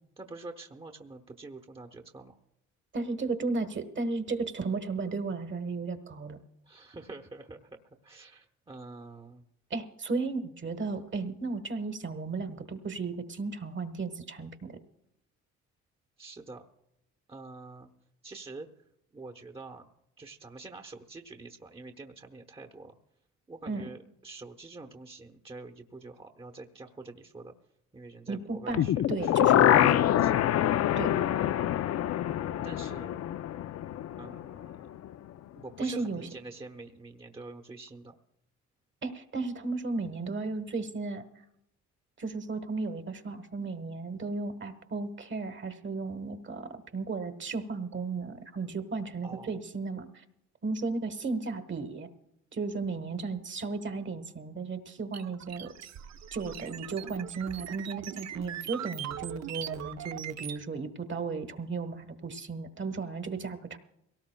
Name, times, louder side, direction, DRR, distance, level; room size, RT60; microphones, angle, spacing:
voice 1, 0.2-2.4 6.6-9.4 16.2-16.6 17.3-17.9 18.2-18.7 19.1-19.9 20.2-22.9 23.5-27.5 27.9-28.9 29.2-30.4 32.6-33.2 34.2-34.8 35.5-38.2 49.2-49.6, right 3 dB, 20° right, 6 dB, 1.0 m, -46 dB
voice 2, 2.9-6.4 9.7-14.8 23.7-23.9 28.3-28.8 29.1-29.9 31.0-31.2 35.8-36.3 39.0-41.3 42.2-50.1 50.6-52.1 52.5-55.7 56.3-63.8, right 4 dB, 40° right, 9 dB, 1.3 m, -34 dB
sound 1, 28.7-34.7 35.0-35.1, left 11 dB, 55° left, 0.5 m, -25 dB
sound 2, 55.1-60.6, right 10 dB, 60° right, 0.7 m, -40 dB
23.0 x 18.0 x 2.3 m, 0.80 s
cardioid pair, 90°, 30 cm